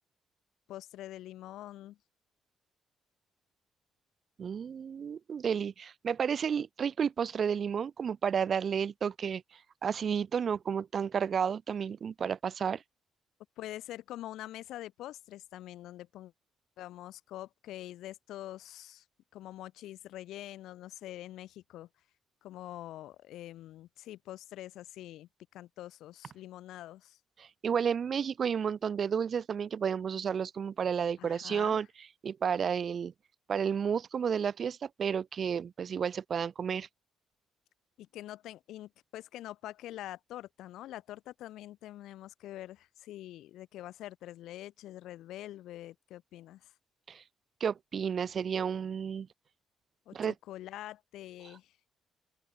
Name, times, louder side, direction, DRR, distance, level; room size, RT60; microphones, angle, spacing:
voice 1, 0.7-2.0 13.6-16.3 16.8-19.0 19.3-21.9 22.4-27.2 31.2-31.8 38.0-46.7 50.1-51.7, left 14 dB, 85° left, 5.4 m, -45 dB
voice 2, 4.4-9.4 9.8-12.8 27.4-31.9 32.2-33.1 33.5-36.9 47.1-47.2 47.6-49.3 50.1-50.3, right 7 dB, 50° right, 0.9 m, -31 dB
open air
cardioid pair, 90°, 0 cm